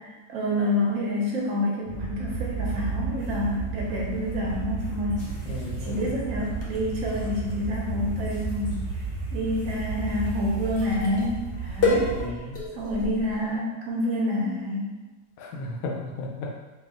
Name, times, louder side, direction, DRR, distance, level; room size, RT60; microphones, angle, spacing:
voice 1, 0.3-5.2 5.9-8.8 9.3-12.1 12.7-14.9, left 1 dB, 55° right, -3 dB, 1.0 m, -28 dB
sound 1, 1.9-12.3, right 4 dB, 30° right, 0.6 m, -33 dB
sound 2, 3.8-13.6, left 2 dB, 55° left, 0.6 m, -34 dB
voice 2, 5.4-6.2 12.1-12.6 15.4-16.5, left 2 dB, 80° left, 0 dB, 1.5 m, -34 dB
3.2 x 3.1 x 3.7 m, 1.2 s
omnidirectional pair, 2.2 m